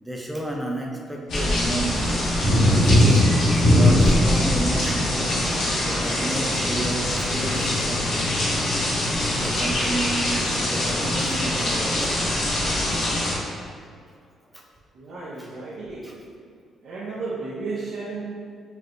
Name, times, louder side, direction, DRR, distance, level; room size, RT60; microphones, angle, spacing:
voice 1, 0.0-2.1 2.6-3.3 3.7-5.3 6.0-8.2 8.6-8.7 9.3-12.2 14.5-14.6 15.4-15.5 16.0-16.2, right 1 dB, 10° right, -1 dB, 0.5 m, -32 dB
sound 1, 1.3-13.3, left 1 dB, 75° left, 0.8 m, -21 dB
sound 2, 3.0-3.6 4.1-4.5 5.7-6.6 7.3-7.9 8.1-10.3, left 1 dB, 45° left, 0.6 m, -36 dB
voice 2, 14.9-16.1 16.8-18.2, right 3 dB, 75° right, -9 dB, 0.5 m, -33 dB
4.2 x 2.1 x 2.5 m, 2.2 s
cardioid pair, 90°, 0 cm